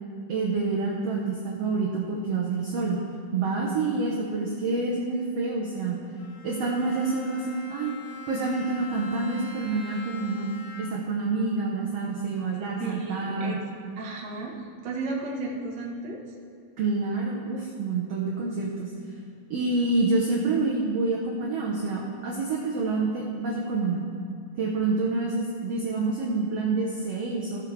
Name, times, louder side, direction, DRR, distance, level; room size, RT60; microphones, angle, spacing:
voice 1, 0.3-3.0 3.3-6.0 6.4-7.9 8.3-10.5 10.8-13.6 16.8-18.9 19.5-24.0 24.6-27.6, right 3 dB, 75° right, -3 dB, 1.4 m, -27 dB
Bowed string instrument, 6.2-11.2, left 4 dB, 85° left, 2.7 m, -44 dB
voice 2, 12.8-13.6 14.0-14.6 14.8-16.2, right 2 dB, 55° right, -2 dB, 1.1 m, -33 dB
16.0 x 7.3 x 3.3 m, 2.5 s
omnidirectional pair, 4.1 m